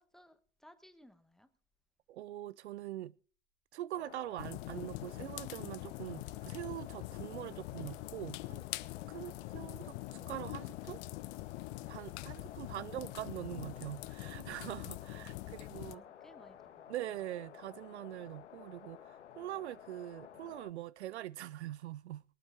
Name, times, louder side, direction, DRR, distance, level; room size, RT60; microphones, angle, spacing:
voice 1, 0.0-1.5 15.2-16.9, equal, ahead, 1.2 m, -62 dB
voice 2, 2.1-3.1 3.7-8.6 9.1-11.0 11.9-16.0 16.9-22.2, right 13 dB, 70° right, 0.5 m, -43 dB
sound 1, 3.9-20.7, left 10 dB, 70° left, 1.6 m, -53 dB
sound 2, 4.4-16.0, left 21 dB, 40° left, 0.6 m, -44 dB
23.0 x 8.7 x 3.5 m
hypercardioid pair, 100°, 36 cm